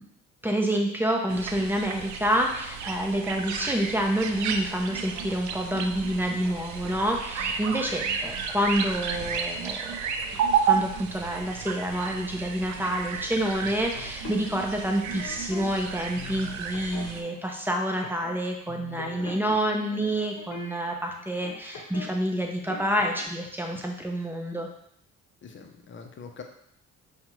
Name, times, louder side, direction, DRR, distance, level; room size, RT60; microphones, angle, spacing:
voice 1, 0.4-9.8 10.6-24.7, right 1 dB, 5° right, 1 dB, 0.7 m, -28 dB
sound 1, 1.3-17.2, right 7 dB, 70° right, 0.5 m, -32 dB
sound 2, 13.9-15.7 16.1-17.4 18.0-18.4 18.6-22.1 22.4-23.2, left 5 dB, 75° left, 0.8 m, -42 dB
voice 2, 19.2-19.6 25.4-26.4, left 5 dB, 40° left, 4 dB, 0.6 m, -44 dB
5.3 x 2.3 x 3.1 m, 0.70 s
cardioid pair, 90°, 30 cm